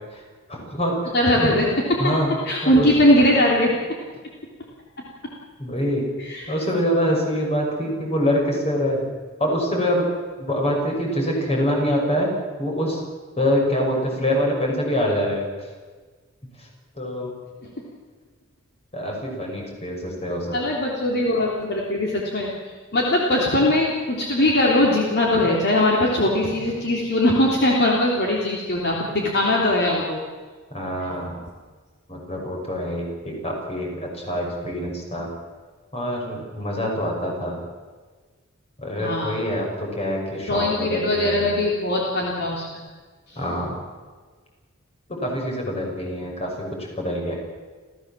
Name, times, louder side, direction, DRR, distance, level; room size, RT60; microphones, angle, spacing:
voice 1, 0.5-1.1 1.4-1.6 2.0-2.3 2.6-2.9 5.6-6.1 6.5-9.1 9.4-10.1 10.4-12.3 12.6-13.0 13.4-15.7 16.6-16.7 16.9-17.3 18.9-20.6 30.7-31.4 32.1-35.3 35.9-37.6 38.8-41.6 43.4-43.8 45.1-47.4, equal, 30° left, 0 dB, 6.2 m, -25 dB
voice 2, 1.1-2.2 2.5-3.7 6.3-6.4 20.5-22.5 22.9-30.2 38.9-39.3 40.5-42.8 43.3-43.4, left 1 dB, 55° left, -2 dB, 3.1 m, -20 dB
29.5 x 15.0 x 7.4 m, 1.4 s
head